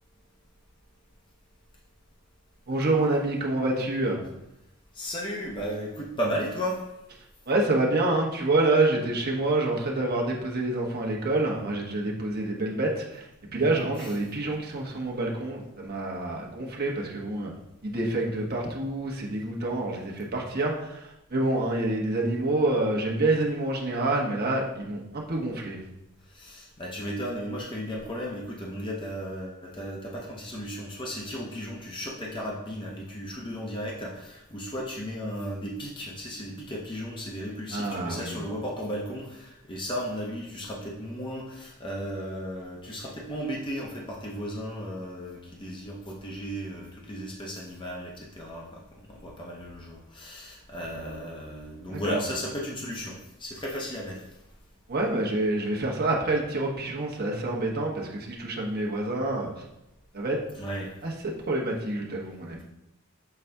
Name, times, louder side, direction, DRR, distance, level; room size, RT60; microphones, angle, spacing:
voice 1, 2.7-4.2 7.5-17.5 17.8-25.8 37.7-38.4 51.9-52.2 54.9-59.6 60.1-60.5 61.0-62.6, right 2 dB, 45° right, -2 dB, 1.1 m, -27 dB
voice 2, 4.9-6.8 14.0-14.1 26.3-48.8 49.1-54.2 60.6-60.9, equal, 20° left, -3 dB, 0.8 m, -35 dB
6.9 x 4.1 x 3.5 m, 0.89 s
head